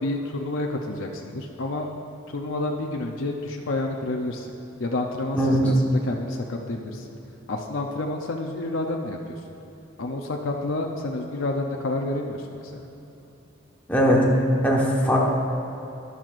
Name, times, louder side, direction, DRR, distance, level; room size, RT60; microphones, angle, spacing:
voice 1, 0.0-1.9 2.3-4.5 4.8-7.1 7.5-9.4 10.0-12.9, left 2 dB, 80° left, 1 dB, 0.7 m, -29 dB
voice 2, 13.9-14.2 14.6-15.2, equal, 10° left, -4 dB, 1.3 m, -20 dB
13.5 x 10.5 x 2.5 m, 3.0 s
head